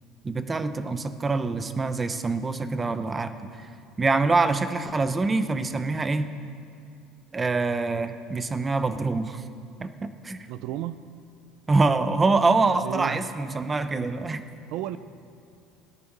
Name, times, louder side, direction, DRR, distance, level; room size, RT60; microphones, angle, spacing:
voice 1, 0.2-3.7 4.0-6.3 7.3-9.4 9.8-10.5 11.7-14.4, right 3 dB, 15° right, 10 dB, 0.7 m, -25 dB
voice 2, 10.5-11.0 12.8-13.3 14.7-15.0, right 13 dB, 65° right, 14 dB, 0.4 m, -33 dB
17.0 x 10.0 x 6.6 m, 2.5 s
cardioid pair, 155°, 0 cm